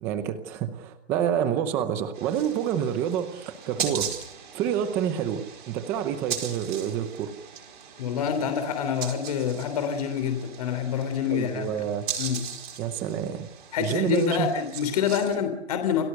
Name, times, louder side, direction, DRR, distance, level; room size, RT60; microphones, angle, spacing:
voice 1, 0.0-4.1 4.5-7.3 11.3-12.0 12.8-13.5 13.8-14.5, right 9 dB, 5° right, 10 dB, 0.7 m, -28 dB
sound 1, 2.1-15.4, right 8 dB, 45° right, 4.9 m, -39 dB
voice 2, 8.0-11.7 12.2-12.5 13.7-16.0, left 7 dB, 35° left, 7 dB, 3.2 m, -27 dB
29.0 x 18.5 x 6.6 m, 0.84 s
hypercardioid pair, 170°, 34 cm